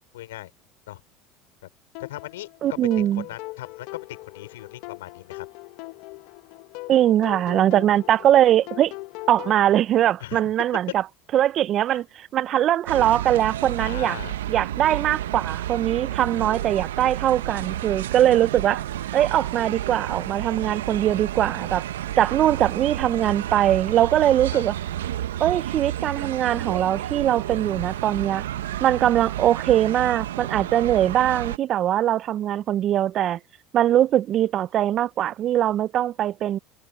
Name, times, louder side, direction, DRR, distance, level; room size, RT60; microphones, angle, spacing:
voice 1, 0.1-0.5 0.9-1.0 2.1-2.5 3.3-5.5 10.2-10.4 13.8-14.3 16.7-16.8 24.5-24.6, left 15 dB, 85° left, 5.6 m, -39 dB
sound 1, 1.9-9.6, left 22 dB, 65° left, 1.3 m, -40 dB
voice 2, 2.6-3.2 6.9-8.9 9.3-11.0 11.3-14.2 14.5-18.8 19.1-21.8 22.2-24.7 25.4-28.4 28.8-33.4 33.7-36.6, right 11 dB, 50° right, 0.6 m, -21 dB
sound 2, 12.9-31.6, right 12 dB, 85° right, 0.9 m, -31 dB
open air
hypercardioid pair, 85°, 0 cm